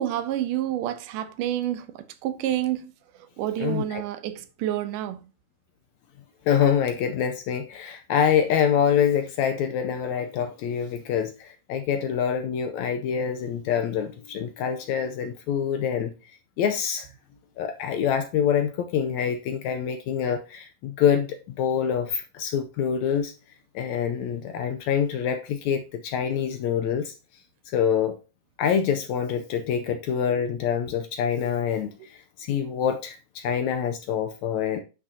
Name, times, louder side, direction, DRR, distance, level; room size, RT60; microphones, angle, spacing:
voice 1, 0.0-2.9 3.2-5.3, right 12 dB, 80° right, 2.2 m, -29 dB
voice 2, 3.6-4.0 6.5-16.1 16.6-17.1 17.6-23.3 23.7-27.1 27.7-28.2 28.6-34.8, left 8 dB, 80° left, 1.7 m, -25 dB
10.0 x 6.1 x 2.7 m
omnidirectional pair, 3.8 m